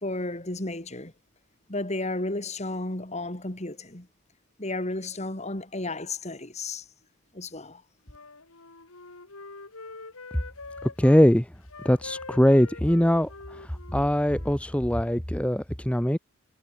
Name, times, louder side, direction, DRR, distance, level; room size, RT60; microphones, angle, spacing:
voice 1, 0.0-1.1 1.7-4.1 4.6-6.8 7.3-7.8, left 2 dB, 30° left, 2.4 m, -33 dB
Wind instrument woodwind instrument, 8.1-11.2 11.6-15.1, left 3 dB, 75° left, 2.9 m, -44 dB
voice 2, 11.0-11.4 11.8-13.3 13.9-16.2, equal, 5° left, 0.8 m, -21 dB
head